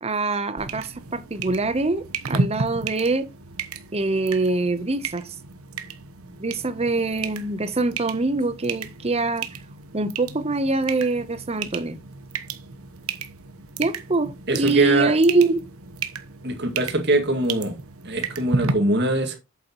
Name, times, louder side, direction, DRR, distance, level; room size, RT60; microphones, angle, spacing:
voice 1, 0.0-3.3 3.9-5.3 6.4-9.5 9.9-12.0 13.8-15.6, right 3 dB, 30° right, 0.8 m, -24 dB
sound 1, 0.6-18.7, right 4 dB, 80° right, 1.1 m, -33 dB
voice 2, 14.5-15.1 16.4-17.7 18.0-19.4, right 2 dB, 50° right, 2.2 m, -22 dB
8.3 x 7.9 x 3.0 m
head